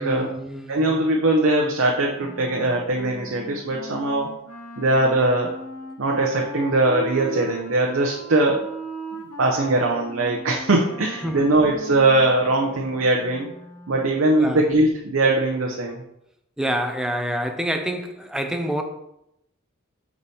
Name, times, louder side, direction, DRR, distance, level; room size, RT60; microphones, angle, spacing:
voice 1, 0.0-0.8 11.2-11.5 14.4-14.6 16.6-18.8, equal, 5° right, 4 dB, 0.5 m, -27 dB
voice 2, 0.7-4.3 4.8-5.5 6.0-8.7 9.4-13.5 13.9-16.0, right 2 dB, 65° right, 0 dB, 0.7 m, -21 dB
Wind instrument woodwind instrument, 2.1-14.2, right 2 dB, 70° left, 1.9 m, -38 dB
4.8 x 4.1 x 5.5 m, 0.82 s
head